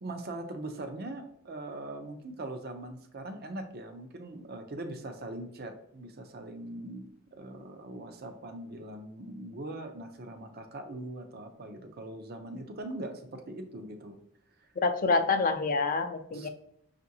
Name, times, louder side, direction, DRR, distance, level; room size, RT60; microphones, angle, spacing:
voice 1, 0.0-14.2 14.6-14.7 16.3-16.5, right 2 dB, 45° right, 6 dB, 0.6 m, -41 dB
voice 2, 14.8-16.5, left 4 dB, 40° left, 8 dB, 0.4 m, -27 dB
6.0 x 2.5 x 2.8 m, 0.74 s
head